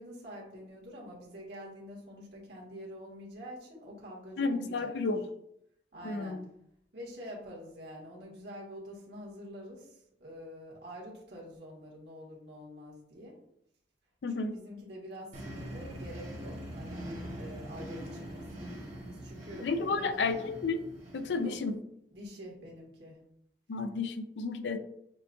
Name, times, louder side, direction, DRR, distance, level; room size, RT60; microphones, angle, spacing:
voice 1, 0.0-5.2 5.9-6.4 6.9-13.4 14.3-18.8 19.1-20.4 21.3-21.5 22.1-23.2, equal, 70° right, -3 dB, 1.6 m, -46 dB
voice 2, 4.4-5.3 6.0-6.4 14.2-14.6 19.6-20.8 21.1-21.8 23.7-24.8, left 4 dB, 80° left, 9 dB, 0.4 m, -32 dB
sound 1, 15.3-21.7, right 1 dB, 45° right, 1.3 m, -43 dB
6.9 x 2.3 x 2.6 m, 0.74 s
head